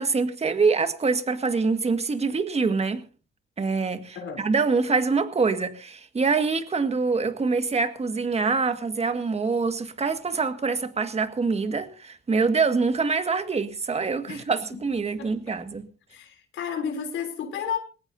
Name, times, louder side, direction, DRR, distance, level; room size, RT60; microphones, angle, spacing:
voice 1, 0.0-3.0 3.6-15.9, right 4 dB, 30° right, 1.8 m, -25 dB
voice 2, 15.2-15.6 16.1-17.8, left 7 dB, 80° left, 3.5 m, -32 dB
21.0 x 18.0 x 2.7 m
cardioid pair, 90°, 20 cm